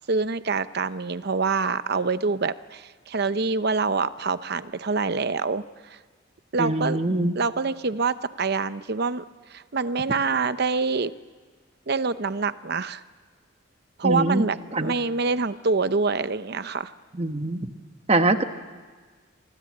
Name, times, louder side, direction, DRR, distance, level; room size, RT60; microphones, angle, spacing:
voice 1, 0.1-5.6 5.9-6.0 6.5-7.0 7.3-9.2 9.5-11.1 11.9-13.0 14.0-16.9, right 4 dB, 55° right, 13 dB, 0.8 m, -26 dB
voice 2, 6.6-7.3 14.0-14.4 14.7-14.9 17.2-17.7 18.1-18.4, right 2 dB, 30° right, 8 dB, 1.2 m, -23 dB
28.5 x 23.0 x 8.6 m, 1.5 s
head